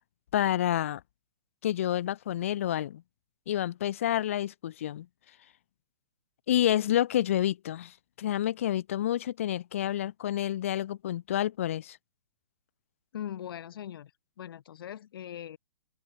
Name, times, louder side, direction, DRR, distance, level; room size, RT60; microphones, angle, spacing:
voice 1, 0.3-1.0 1.6-3.0 3.5-5.1 6.5-12.0, left 12 dB, 30° left, 0.3 m, -29 dB
voice 2, 13.1-14.1 14.4-15.6, left 10 dB, 50° left, 3.1 m, -40 dB
open air
hypercardioid pair, 175°, 15 cm